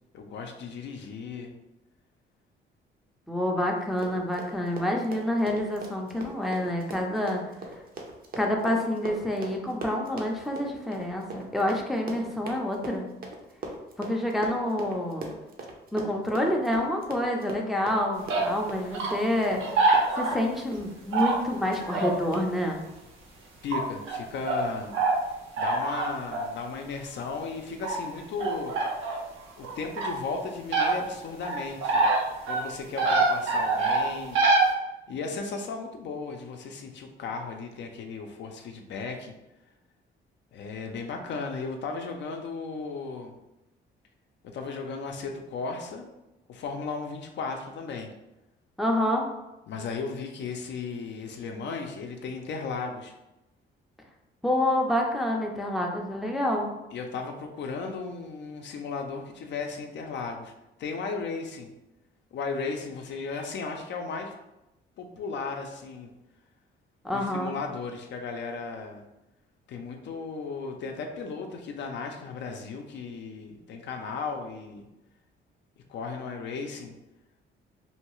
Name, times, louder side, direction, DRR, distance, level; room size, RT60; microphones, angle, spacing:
voice 1, 0.1-1.5 23.6-25.0 25.6-28.8 29.6-32.1 32.5-34.4 35.1-39.3 40.5-43.3 44.4-46.1 46.5-48.1 49.7-53.1 56.9-60.5 60.8-61.7 62.3-64.3 65.0-66.1 67.1-69.0 69.7-74.9 75.9-76.9, left 4 dB, 65° left, 3 dB, 0.5 m, -35 dB
voice 2, 3.3-7.4 8.4-13.1 14.0-15.3 15.9-19.6 20.2-22.8 48.8-49.3 54.4-56.7 67.0-67.6, left 1 dB, ahead, 0 dB, 0.4 m, -27 dB
Run, 3.8-20.5 20.7-20.9 21.2-21.4 21.7-21.8 22.3-22.5, right 2 dB, 50° right, 0.6 m, -40 dB
sound 1, 18.3-18.5 18.9-19.1 19.6-20.5 21.1-21.4 21.8-22.3 22.6-22.7 23.7-24.2 24.5-24.6 24.9-25.2 25.6-26.4 27.8-28.0 28.4-29.2 29.6-30.2 30.7-30.9 31.4-32.2 32.5-32.6 33.0-34.7, right 3 dB, 90° right, 0.6 m, -24 dB
2.7 x 2.2 x 3.0 m, 0.95 s
cardioid pair, 90°, 20 cm